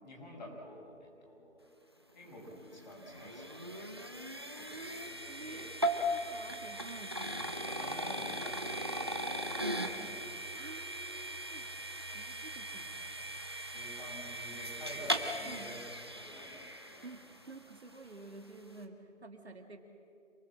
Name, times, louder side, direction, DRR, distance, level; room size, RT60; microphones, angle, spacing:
voice 1, 0.0-1.7 2.1-5.7 7.6-9.1 9.4-10.1 13.7-17.1, equal, 35° left, -3 dB, 6.4 m, -50 dB
sound 1, 2.3-17.5, equal, 20° right, 0.8 m, -38 dB
voice 2, 5.3-7.2 10.6-11.7 12.1-13.0 15.5-15.7 17.0-19.8, right 3 dB, 55° right, 4 dB, 2.3 m, -50 dB
27.0 x 19.0 x 7.5 m, 2.6 s
figure-of-eight pair, 170°, 39 cm